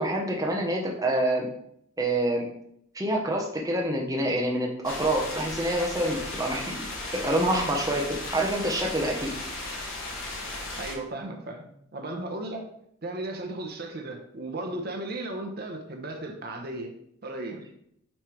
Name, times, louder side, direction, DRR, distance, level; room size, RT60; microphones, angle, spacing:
voice 1, 0.0-1.5 2.0-2.5 2.9-6.9 7.1-9.3, right 1 dB, 15° right, 0 dB, 0.9 m, -27 dB
sound 1, 4.8-10.9, left 2 dB, 70° left, 1.9 m, -36 dB
voice 2, 10.8-12.7 13.0-16.9 17.2-17.6, right 2 dB, 45° right, 3 dB, 0.9 m, -35 dB
8.7 x 3.3 x 4.5 m, 0.71 s
head